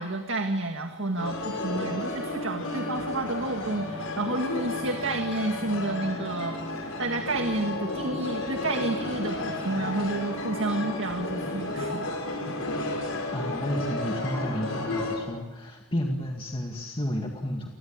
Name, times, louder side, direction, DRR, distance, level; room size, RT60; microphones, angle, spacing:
voice 1, 0.0-12.2, right 2 dB, 60° right, 4 dB, 2.1 m, -30 dB
sound 1, 1.2-15.2, left 2 dB, 85° left, 5.8 m, -32 dB
voice 2, 13.0-17.7, left 1 dB, 25° left, 1 dB, 2.2 m, -32 dB
29.0 x 21.0 x 8.9 m, 1.2 s
head